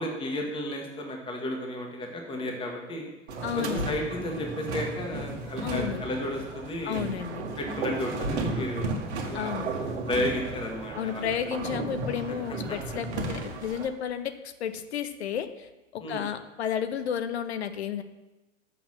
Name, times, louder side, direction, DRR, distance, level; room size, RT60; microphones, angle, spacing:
voice 1, 0.0-3.1 3.5-7.0 7.6-9.6 10.1-11.3 12.7-12.8 16.0-16.2, left 1 dB, 15° left, 1 dB, 1.4 m, -33 dB
sound 1, 3.3-13.9, right 3 dB, 55° right, 1.5 m, -34 dB
voice 2, 3.4-3.8 5.6-6.0 6.8-7.5 9.3-9.7 10.9-18.0, left 8 dB, 55° left, 11 dB, 0.7 m, -32 dB
6.7 x 5.8 x 7.4 m, 1.1 s
figure-of-eight pair, 95°, 38 cm